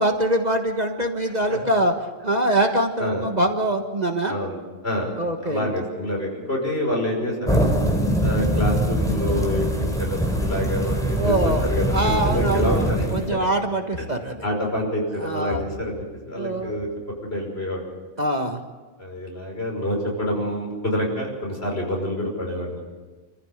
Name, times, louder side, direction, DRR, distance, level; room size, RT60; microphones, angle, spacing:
voice 1, 0.0-1.9 2.2-4.4 5.2-5.7 11.2-14.4 15.2-15.7 16.4-16.8 18.2-18.6, right 1 dB, 35° right, 4 dB, 1.6 m, -24 dB
voice 2, 4.2-5.1 5.4-7.8 8.2-13.2 14.4-16.9 17.2-17.8 19.0-22.8, left 1 dB, 55° left, 0 dB, 6.1 m, -27 dB
sound 1, 7.5-13.3, right 1 dB, 5° left, 3.7 m, -23 dB
27.0 x 15.0 x 8.2 m, 1.4 s
omnidirectional pair, 1.3 m